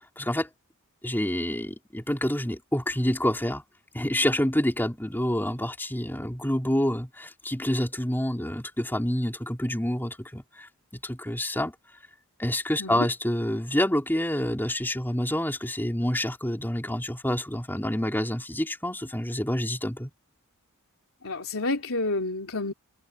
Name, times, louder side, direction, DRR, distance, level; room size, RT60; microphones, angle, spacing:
voice 1, 0.2-0.5 1.0-3.6 3.9-10.7 11.0-11.7 12.4-20.1, left 1 dB, 10° left, 3.9 m, -27 dB
voice 2, 21.2-22.7, left 2 dB, 65° left, 4.0 m, -29 dB
head